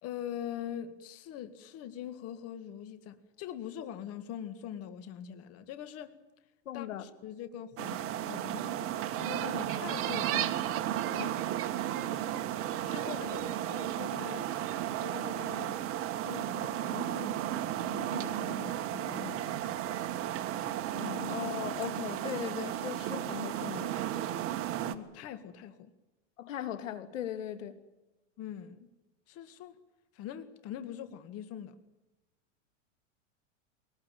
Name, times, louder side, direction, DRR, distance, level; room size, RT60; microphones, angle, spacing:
voice 1, 0.0-6.2 6.7-10.7 12.8-14.5 15.0-15.8 16.2-17.5 17.8-19.8 24.8-25.9 28.4-28.9 29.3-29.8 30.1-31.8, left 10 dB, 40° left, 1.9 m, -43 dB
voice 2, 6.6-7.0 11.1-11.3 21.0-23.9 26.4-27.8, left 10 dB, 85° left, 2.8 m, -38 dB
sound 1, 7.8-24.9, right 12 dB, 35° right, 1.7 m, -34 dB
23.5 x 19.5 x 9.2 m
supercardioid pair, 130°, 38 cm